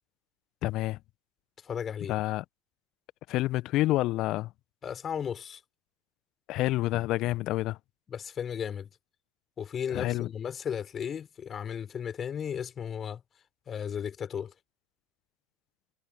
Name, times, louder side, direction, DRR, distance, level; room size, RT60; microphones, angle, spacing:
voice 1, 0.6-1.0 2.1-2.4 3.3-4.5 6.5-7.8 9.9-10.3, left 17 dB, 50° left, 1.3 m, -28 dB
voice 2, 1.6-2.1 4.8-5.6 8.1-8.9 9.6-13.2 13.7-14.5, left 8 dB, 30° left, 4.5 m, -35 dB
figure-of-eight pair, 75°, 0 cm